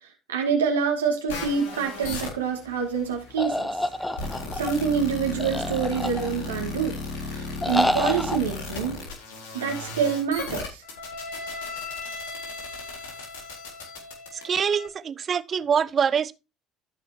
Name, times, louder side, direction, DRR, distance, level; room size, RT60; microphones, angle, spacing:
voice 1, 0.0-3.7 4.5-7.0 7.2-9.0 9.5-10.8, right 6 dB, 85° right, 2.3 m, -26 dB
sound 1, 1.3-14.9, left 3 dB, 75° left, 3.8 m, -36 dB
sound 2, 3.4-4.7 5.4-6.5 7.6-8.4, left 1 dB, 10° left, 1.1 m, -27 dB
voice 2, 14.4-16.3, right 7 dB, 40° right, 0.9 m, -24 dB
15.0 x 6.1 x 2.9 m
hypercardioid pair, 60°, 0 cm